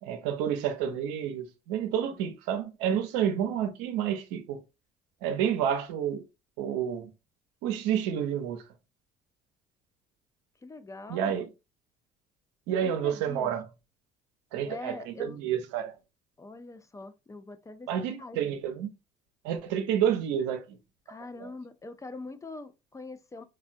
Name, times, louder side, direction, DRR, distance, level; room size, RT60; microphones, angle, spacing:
voice 1, 0.0-4.6 5.2-6.2 6.6-7.1 7.6-8.6 11.1-11.5 12.7-13.7 14.5-16.0 17.9-18.9 19.4-20.8 21.4-21.5, right 9 dB, 80° right, 0.6 m, -29 dB
voice 2, 10.6-11.4 12.8-13.5 14.6-15.4 16.4-18.4 21.1-23.4, left 3 dB, 15° left, 0.4 m, -43 dB
3.2 x 2.2 x 2.6 m
supercardioid pair, 70°, 18 cm